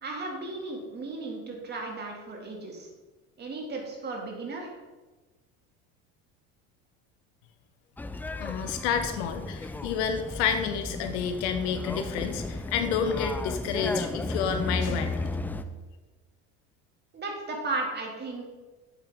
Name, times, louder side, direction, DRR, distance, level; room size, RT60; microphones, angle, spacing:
voice 1, 0.0-2.9 3.4-4.7 17.1-18.4, right 3 dB, 30° right, 0 dB, 2.3 m, -35 dB
sound 1, 8.0-15.6, left 2 dB, 5° left, 0.3 m, -34 dB
voice 2, 8.4-15.3, left 7 dB, 90° left, 7 dB, 1.1 m, -29 dB
8.4 x 7.5 x 3.6 m, 1.2 s
supercardioid pair, 110°, 32 cm